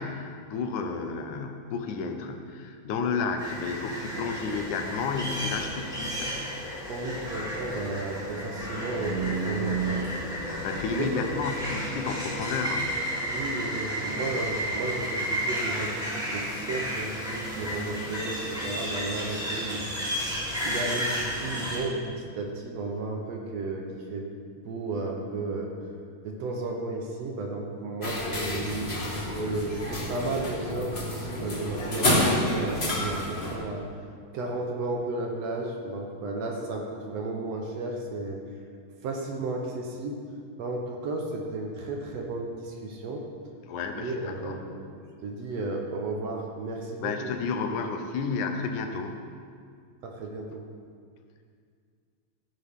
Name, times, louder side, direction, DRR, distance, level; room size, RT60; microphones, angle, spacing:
voice 1, 0.0-6.4 10.6-13.0 43.7-44.6 47.0-49.2, left 5 dB, 85° left, 5 dB, 2.4 m, -31 dB
sound 1, 3.4-21.8, right 1 dB, ahead, 2.3 m, -32 dB
voice 2, 6.9-10.0 11.0-11.1 13.2-19.8 20.6-23.8 24.1-24.3 24.7-25.7 26.2-28.9 29.3-33.8 34.3-38.4 39.0-40.2 40.6-43.2 43.9-44.7 45.2-47.3 50.0-50.6, right 2 dB, 65° right, 1 dB, 2.0 m, -33 dB
sound 2, 28.0-33.5, left 1 dB, 25° left, 1.6 m, -29 dB
14.5 x 9.7 x 3.6 m, 2.1 s
omnidirectional pair, 3.4 m